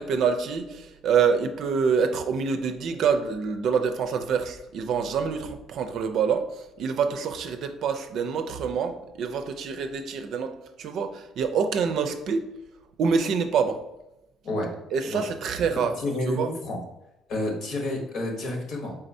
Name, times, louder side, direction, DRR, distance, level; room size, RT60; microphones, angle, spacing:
voice 1, 0.0-12.5 13.0-13.8 14.9-15.9 16.3-16.5, right 6 dB, 65° right, 7 dB, 0.5 m, -26 dB
voice 2, 16.0-16.8 17.3-18.9, left 1 dB, 65° left, 1 dB, 1.1 m, -30 dB
4.2 x 3.7 x 2.6 m, 0.93 s
supercardioid pair, 70°, 0 cm